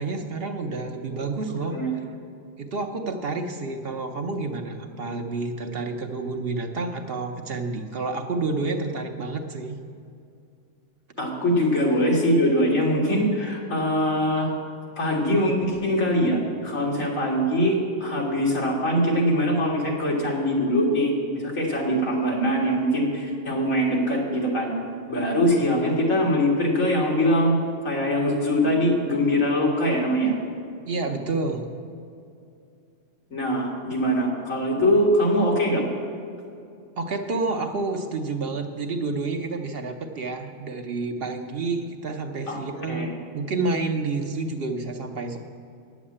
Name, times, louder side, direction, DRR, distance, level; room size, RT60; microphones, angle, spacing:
voice 1, 0.0-1.8 2.6-9.8 30.9-31.7 37.0-43.1 43.3-45.4, right 3 dB, 55° right, 4 dB, 0.9 m, -29 dB
voice 2, 11.2-14.5 15.0-24.7 25.1-27.6 27.8-30.3 33.3-35.8 42.5-42.6 42.9-43.1, equal, 85° left, -2 dB, 2.5 m, -22 dB
9.5 x 7.2 x 8.6 m, 2.5 s
omnidirectional pair, 1.4 m